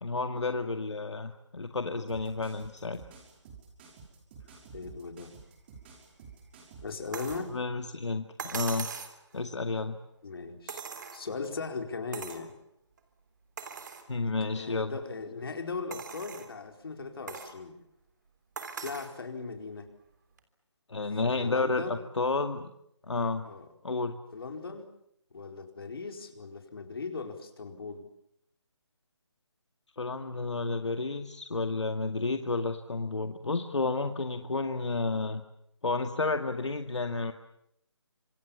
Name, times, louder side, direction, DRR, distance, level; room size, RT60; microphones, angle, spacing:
voice 1, 0.0-3.0 7.5-8.2 8.5-8.9 9.3-10.0 14.1-14.9 20.9-22.7 23.1-23.5 23.8-24.1 30.0-35.4 35.8-37.3, left 3 dB, 75° left, 6 dB, 2.1 m, -31 dB
sound 1, 2.1-7.5, right 5 dB, 20° right, 5.8 m, -51 dB
voice 2, 4.7-5.3 6.8-7.5 10.2-10.8 11.1-12.6 14.4-17.8 18.8-19.9 21.2-22.1 23.4-23.7 24.3-24.9 25.3-28.1, left 4 dB, 55° left, 5 dB, 4.5 m, -38 dB
sound 2, 7.1-7.5 8.4-9.2 10.7-11.5 12.1-12.5 13.0-13.1 13.6-14.1 14.7-14.8 15.9-16.5 17.3-17.6 18.6-19.1 20.4-20.5, right 6 dB, 40° right, 3.5 m, -40 dB
28.0 x 26.5 x 7.3 m, 0.75 s
figure-of-eight pair, 165°, 15 cm